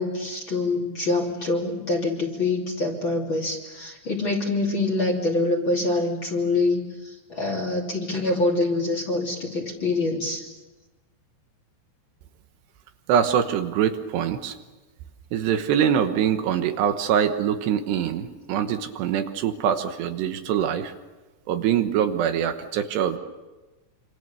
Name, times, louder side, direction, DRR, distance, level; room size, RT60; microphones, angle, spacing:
voice 1, 0.0-10.5, left 2 dB, 30° left, 2 dB, 3.0 m, -25 dB
voice 2, 13.1-14.6 15.3-20.9 21.5-23.2, right 9 dB, 75° right, 8 dB, 3.2 m, -24 dB
26.5 x 26.5 x 6.9 m, 1.2 s
omnidirectional pair, 5.1 m